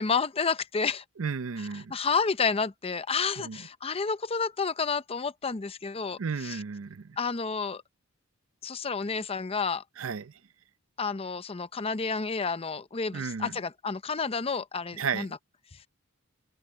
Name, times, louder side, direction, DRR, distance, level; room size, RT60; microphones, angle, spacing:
voice 1, 0.0-1.0 1.7-6.6 7.2-7.8 8.6-9.8 11.0-15.3, left 5 dB, 30° left, 0.6 m, -30 dB
voice 2, 1.2-1.9 3.4-3.6 6.2-7.1 10.0-10.3 13.1-13.5 15.0-15.4, right 5 dB, 75° right, 0.6 m, -33 dB
head